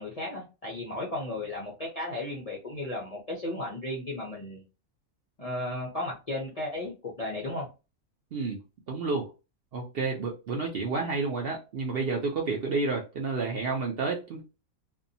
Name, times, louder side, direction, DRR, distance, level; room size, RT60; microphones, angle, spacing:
voice 1, 0.0-4.6 5.4-7.7, left 1 dB, 45° left, 0.5 m, -35 dB
voice 2, 8.9-9.3 9.7-14.4, right 4 dB, 60° right, 0.6 m, -30 dB
2.6 x 2.2 x 2.6 m
omnidirectional pair, 1.5 m